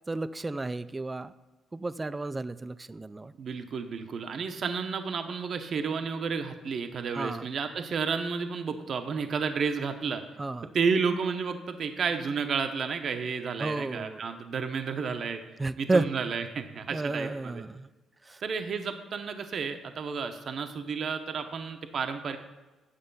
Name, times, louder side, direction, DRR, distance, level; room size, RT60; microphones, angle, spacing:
voice 1, 0.1-1.3 1.7-3.3 7.2-7.4 10.4-10.7 13.6-14.2 15.6-16.1 16.9-17.9 18.3-18.4, right 2 dB, 20° right, 13 dB, 0.3 m, -32 dB
voice 2, 3.4-10.2 10.7-15.4 15.8-17.6 18.4-22.4, right 5 dB, 55° right, 7 dB, 0.7 m, -31 dB
9.0 x 6.6 x 5.4 m, 1.2 s
cardioid pair, 90°, 0 cm